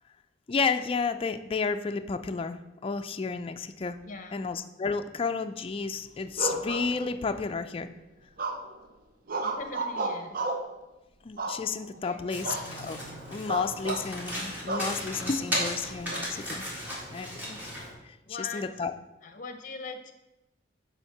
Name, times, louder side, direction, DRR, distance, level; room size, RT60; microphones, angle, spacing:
voice 1, 0.5-4.0 4.3-7.9 11.2-13.0 13.3-16.7 17.1-17.6 18.4-18.9, left 5 dB, 30° left, 8 dB, 0.3 m, -31 dB
voice 2, 4.0-4.4 9.4-10.4 11.9-12.6 18.2-18.7 19.2-20.1, left 4 dB, 45° left, 7 dB, 0.7 m, -41 dB
sound 1, 6.4-7.4 8.4-8.8 9.3-10.7 11.4-12.0 12.4-12.7 13.0-13.1 13.5-14.1 14.7-14.9 15.5-16.2, right 2 dB, 50° right, 0.6 m, -33 dB
Domestic sounds home sounds, 12.3-17.9, equal, 10° right, 1.8 m, -36 dB
7.0 x 3.6 x 5.9 m, 0.98 s
head